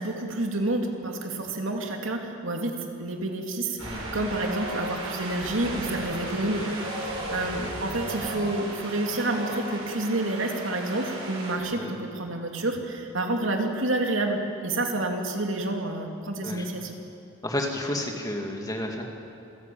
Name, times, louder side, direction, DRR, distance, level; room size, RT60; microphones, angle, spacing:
voice 1, 0.0-6.7 7.0-16.9, right 2 dB, 65° right, 2 dB, 2.8 m, -29 dB
Wind, 3.8-11.5, right 1 dB, 85° right, 7.5 m, -35 dB
voice 2, 17.4-19.0, left 1 dB, 15° left, 1 dB, 2.4 m, -31 dB
27.0 x 17.5 x 8.6 m, 2.6 s
head